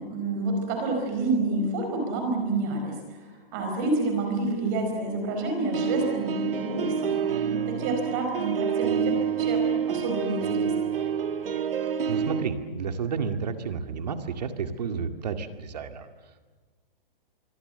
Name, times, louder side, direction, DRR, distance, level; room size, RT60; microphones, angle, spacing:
voice 1, 0.0-3.2 3.5-10.9, right 2 dB, 20° right, 3 dB, 4.7 m, -29 dB
sound 1, 5.7-12.4, right 7 dB, 70° right, 2.2 m, -27 dB
voice 2, 12.1-16.1, right 5 dB, 45° right, 7 dB, 2.2 m, -31 dB
26.0 x 24.0 x 7.9 m, 1.4 s
hypercardioid pair, 180°, 29 cm